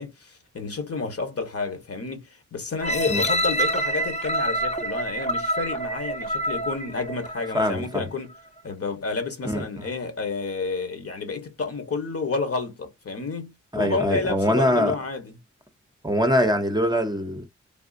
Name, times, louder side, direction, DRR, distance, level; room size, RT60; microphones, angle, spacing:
voice 1, 0.0-8.3 8.6-15.3, left 4 dB, 50° left, 1.2 m, -30 dB
sound 1, 2.8-7.8 8.3-8.4, right 1 dB, 20° left, 0.7 m, -27 dB
voice 2, 7.5-8.1 9.4-9.9 13.7-15.0 16.0-17.5, equal, 15° right, 0.8 m, -23 dB
3.5 x 2.4 x 2.6 m
cardioid pair, 50°, 31 cm